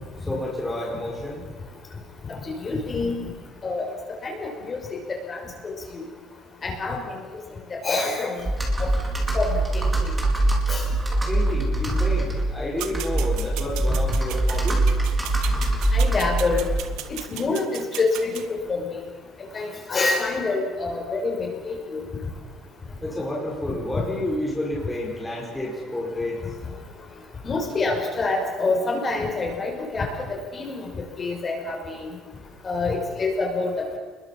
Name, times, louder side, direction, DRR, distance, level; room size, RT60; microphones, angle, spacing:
voice 1, 0.3-1.4 11.3-14.8 23.0-26.4, left 1 dB, 5° left, -4 dB, 5.1 m, -30 dB
voice 2, 2.5-3.2 3.6-3.9 4.2-5.0 5.3-5.7 6.6-7.0 7.7-8.4 9.3-10.1 10.7-10.8 15.9-16.7 17.3-19.0 19.5-22.0 27.4-30.9 31.2-32.1 32.6-34.0, left 3 dB, 25° left, 1 dB, 6.0 m, -26 dB
Computer keyboard, 8.4-17.0, right 2 dB, 10° right, 4.7 m, -23 dB
sound 1, 12.8-18.5, right 13 dB, 75° right, 1.9 m, -37 dB
29.5 x 22.0 x 7.5 m, 1.4 s
cardioid pair, 160°, 0 cm